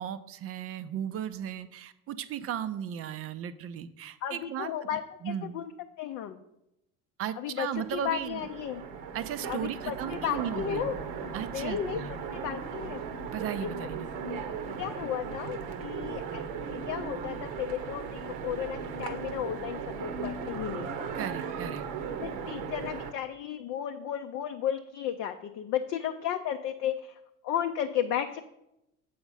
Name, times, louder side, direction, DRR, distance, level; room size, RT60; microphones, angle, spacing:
voice 1, 0.0-5.6 7.2-8.5 9.1-11.0 11.3-12.2 13.3-14.1 21.1-21.8, right 9 dB, 35° right, 13 dB, 0.5 m, -36 dB
voice 2, 4.2-5.7 6.0-6.4 7.4-7.7 7.9-8.8 9.5-10.9 11.5-12.0 12.4-13.0 13.8-13.9 14.8-21.1 22.2-27.1 27.4-28.4, left 10 dB, 40° left, 6 dB, 0.6 m, -34 dB
Train, 7.7-23.1, right 6 dB, 55° right, 0.9 m, -37 dB
7.8 x 5.0 x 5.5 m, 0.85 s
figure-of-eight pair, 65°, 42 cm